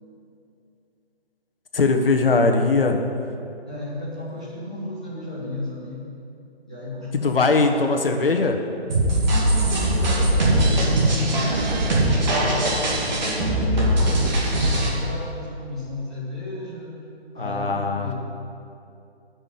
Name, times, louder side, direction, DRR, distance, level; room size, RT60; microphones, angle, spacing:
voice 1, 1.7-3.0 7.2-8.6 17.4-18.1, left 3 dB, 60° left, 5 dB, 1.3 m, -20 dB
voice 2, 3.7-6.1 6.7-7.4 7.7-7.9 9.3-11.6 12.2-12.7 13.1-14.3 14.6-17.0 17.3-18.1, left 2 dB, 5° right, -10 dB, 0.4 m, -33 dB
sound 1, 8.9-14.9, right 1 dB, 45° right, 2.5 m, -21 dB
10.5 x 6.3 x 8.5 m, 2.6 s
figure-of-eight pair, 145°, 32 cm